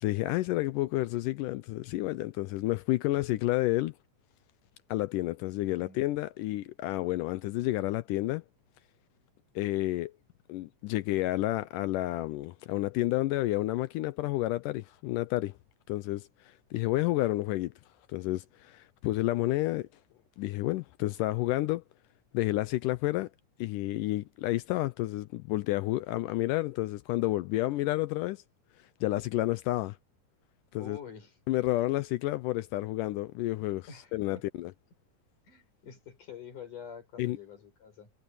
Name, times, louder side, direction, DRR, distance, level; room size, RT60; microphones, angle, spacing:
voice 1, 0.0-3.9 4.9-8.4 9.6-10.1 10.5-15.5 15.9-17.7 18.1-19.9 20.4-21.8 22.3-23.3 23.6-28.4 29.0-30.0 30.7-31.0 31.5-34.7 37.2-37.4, left 17 dB, 85° left, 1.9 m, -30 dB
voice 2, 5.6-6.1 30.7-31.4 33.9-34.5 35.5-38.1, left 7 dB, 60° left, 7.0 m, -47 dB
omnidirectional pair, 4.2 m